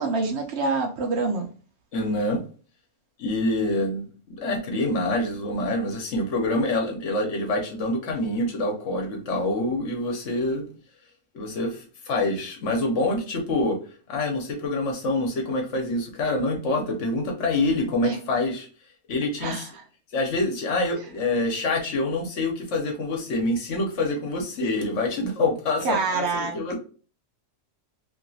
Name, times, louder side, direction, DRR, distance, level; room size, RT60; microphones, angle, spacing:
voice 1, 0.0-1.5 18.0-18.2 19.4-19.7 25.8-26.7, right 4 dB, 65° right, 3 dB, 0.9 m, -26 dB
voice 2, 1.9-2.4 3.2-10.7 11.3-13.8 14.1-18.7 19.1-19.6 20.1-26.7, left 2 dB, 70° left, 1 dB, 1.1 m, -26 dB
2.9 x 2.9 x 2.7 m, 0.38 s
omnidirectional pair, 1.3 m